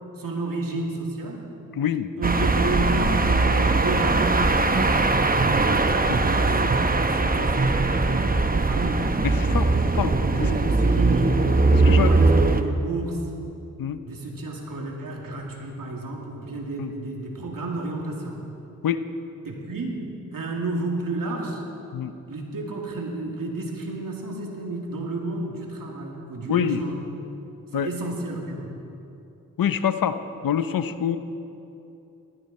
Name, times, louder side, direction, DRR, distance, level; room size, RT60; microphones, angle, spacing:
voice 1, 0.2-1.5 2.2-5.2 5.8-9.1 9.4-11.5 11.9-13.3 14.0-18.4 19.4-21.6 22.3-27.0 27.7-28.7, right 2 dB, 75° right, -1 dB, 2.6 m, -31 dB
voice 2, 1.7-2.1 6.1-6.2 9.2-9.7 9.9-10.1 11.7-12.1 13.8-14.0 16.8-16.9 18.8-19.0 21.9-22.1 26.5-26.8 27.7-27.9 29.6-30.2 30.4-31.2, left 9 dB, 75° left, 11 dB, 0.7 m, -25 dB
sound 1, 2.2-12.6, right 3 dB, 25° right, 0.9 m, -20 dB
19.0 x 13.0 x 4.3 m, 2.8 s
cardioid pair, 45°, 34 cm